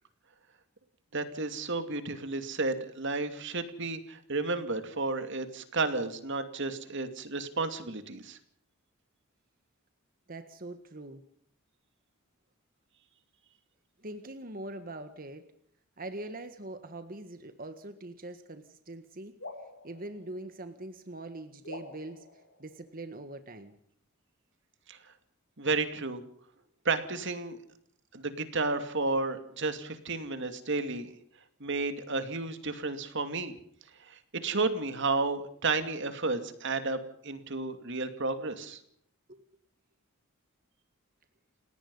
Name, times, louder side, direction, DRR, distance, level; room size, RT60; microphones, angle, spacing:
voice 1, 1.1-8.4 24.9-25.0 25.6-26.2 26.8-27.6 28.1-31.1 31.6-33.5 34.0-38.8, right 3 dB, 60° right, 9 dB, 2.6 m, -32 dB
voice 2, 10.3-11.2 14.0-15.5 16.0-19.3 19.8-23.8 39.3-39.5, right 2 dB, 40° right, 9 dB, 1.6 m, -43 dB
sound 1, 19.4-21.0 21.6-23.3, left 2 dB, 65° left, 6.7 m, -48 dB
29.5 x 17.5 x 5.6 m, 0.65 s
head